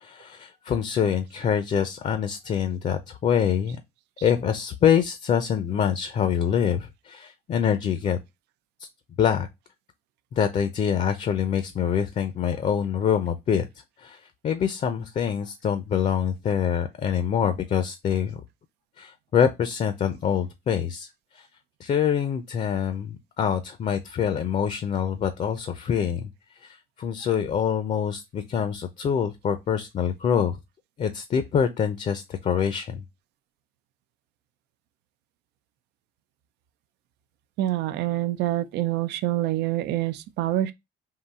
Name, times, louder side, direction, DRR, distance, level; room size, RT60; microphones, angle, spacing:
voice 1, 0.0-3.8 4.2-8.2 9.2-9.5 10.3-13.7 14.0-14.2 14.4-18.4 19.0-21.1 21.3-21.5 21.8-26.3 26.6-30.6 31.0-33.0, left 8 dB, 45° left, 0.6 m, -25 dB
voice 2, 37.6-40.7, right 14 dB, 80° right, 0.5 m, -26 dB
3.8 x 2.6 x 4.1 m
cardioid pair, 110°, 17 cm